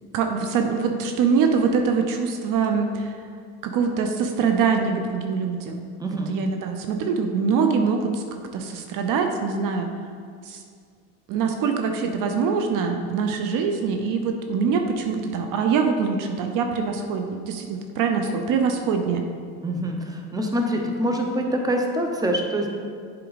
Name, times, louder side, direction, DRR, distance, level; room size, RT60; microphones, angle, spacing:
voice 1, 0.1-3.1 3.6-5.8 6.3-9.9 10.5-10.6 11.3-19.2, right 5 dB, 60° right, 5 dB, 0.8 m, -24 dB
voice 2, 6.0-6.3 19.6-22.7, equal, 10° right, 2 dB, 0.9 m, -25 dB
7.7 x 4.5 x 4.1 m, 2.1 s
supercardioid pair, 90°, 37 cm